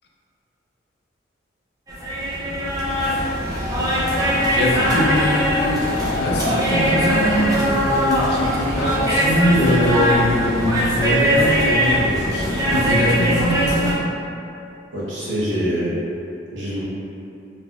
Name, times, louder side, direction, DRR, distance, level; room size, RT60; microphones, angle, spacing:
sound 1, 1.9-13.9, equal, 20° right, 0.4 m, -21 dB
sound 2, 3.6-7.7 7.9-8.0, left 6 dB, 5° left, 1.3 m, -30 dB
voice 1, 4.5-14.0, equal, 55° left, -2 dB, 0.4 m, -22 dB
voice 2, 14.9-15.9 16.5-16.8, equal, 75° right, -8 dB, 0.9 m, -24 dB
3.4 x 2.5 x 2.3 m, 2.6 s
head